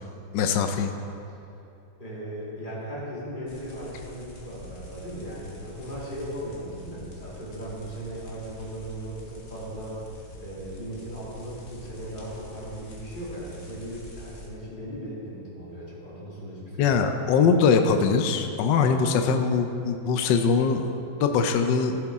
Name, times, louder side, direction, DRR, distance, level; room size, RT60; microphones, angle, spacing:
voice 1, 0.3-0.9 16.8-22.0, left 5 dB, 70° left, 6 dB, 1.2 m, -22 dB
voice 2, 2.0-17.1, right 1 dB, 25° left, -8 dB, 2.8 m, -37 dB
Ambiance Fire Bushes Loop Stereo, 3.5-14.5, left 1 dB, 45° left, 1.9 m, -45 dB
15.0 x 8.1 x 3.6 m, 2.6 s
omnidirectional pair, 2.3 m